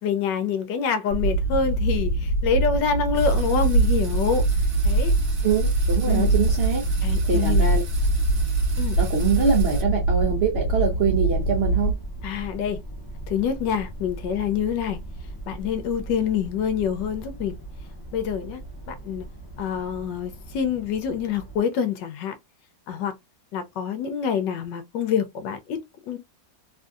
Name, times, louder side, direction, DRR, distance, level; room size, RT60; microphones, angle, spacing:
voice 1, 0.0-4.5 4.8-5.1 6.1-6.3 7.0-7.8 8.8-9.0 12.2-12.8 13.3-15.0 15.5-17.5 18.1-18.6 18.9-19.2 19.6-22.3 22.9-23.1 23.5-25.8 26.1-26.2, left 7 dB, 75° left, 1.2 m, -26 dB
sound 1, 1.1-11.9, right 2 dB, 55° left, 0.9 m, -23 dB
sound 2, 3.1-9.8, right 5 dB, 50° right, 0.9 m, -42 dB
voice 2, 5.4-6.8 7.2-7.8 9.0-12.0, right 6 dB, 75° right, 0.5 m, -24 dB
sound 3, 6.4-21.6, right 1 dB, 20° left, 0.6 m, -38 dB
3.4 x 2.6 x 2.3 m
omnidirectional pair, 2.0 m